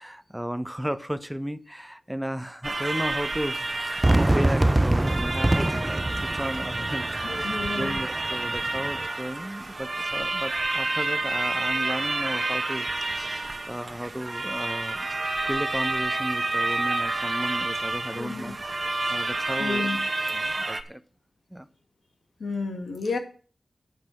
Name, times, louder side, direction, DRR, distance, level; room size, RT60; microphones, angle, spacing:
voice 1, 0.0-15.1 15.5-18.5 18.8-19.9 20.3-21.0 21.5-21.7, equal, 5° right, 13 dB, 0.9 m, -34 dB
sound 1, 2.6-20.8, right 2 dB, 45° right, 1.3 m, -29 dB
Fireworks, 4.0-9.1, right 1 dB, 25° right, 0.5 m, -25 dB
voice 2, 7.2-8.0 18.2-18.5 19.6-20.0 22.4-23.2, left 4 dB, 85° left, 5 dB, 2.0 m, -31 dB
10.0 x 5.5 x 7.7 m, 0.40 s
cardioid pair, 40°, 0 cm